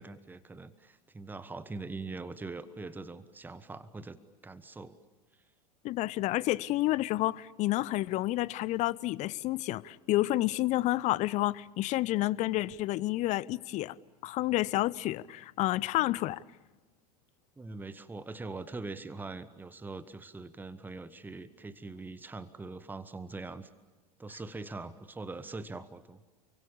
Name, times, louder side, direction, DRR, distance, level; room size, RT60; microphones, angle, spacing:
voice 1, 0.0-4.2 4.4-5.0 17.6-23.7 24.2-26.2, right 3 dB, 10° right, 1.3 m, -42 dB
voice 2, 5.8-13.9 14.2-16.4, left 16 dB, 35° left, 0.8 m, -30 dB
30.0 x 23.5 x 7.2 m
figure-of-eight pair, 85°, 20 cm